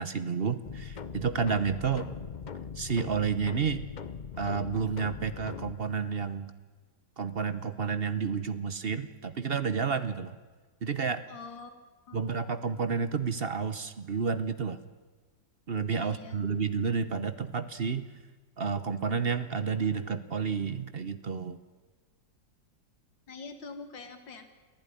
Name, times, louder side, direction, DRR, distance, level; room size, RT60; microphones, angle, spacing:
voice 1, 0.0-2.1 2.8-3.8 4.4-6.5 7.2-10.3 10.8-11.2 12.1-14.8 15.7-18.1 18.6-21.6, right 6 dB, 45° right, 13 dB, 0.9 m, -30 dB
sound 1, 0.7-5.7, left 6 dB, 65° left, 0.4 m, -40 dB
voice 2, 11.3-11.7 12.1-12.3 15.9-16.4 23.3-24.5, left 4 dB, 85° left, 7 dB, 2.6 m, -45 dB
23.5 x 15.0 x 9.9 m, 1.4 s
omnidirectional pair, 2.0 m